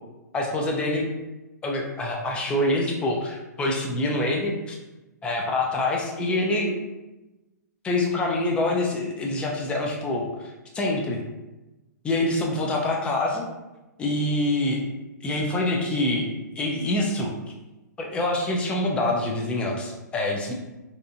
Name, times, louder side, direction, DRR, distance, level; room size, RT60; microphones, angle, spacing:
voice 1, 0.3-1.1 1.6-4.8 5.2-6.7 7.8-11.2 12.0-13.4 14.0-14.8 15.2-16.3 16.6-17.3 18.0-20.5, left 2 dB, 10° left, 0 dB, 0.3 m, -25 dB
2.7 x 2.2 x 2.5 m, 1.1 s
hypercardioid pair, 140°, 10 cm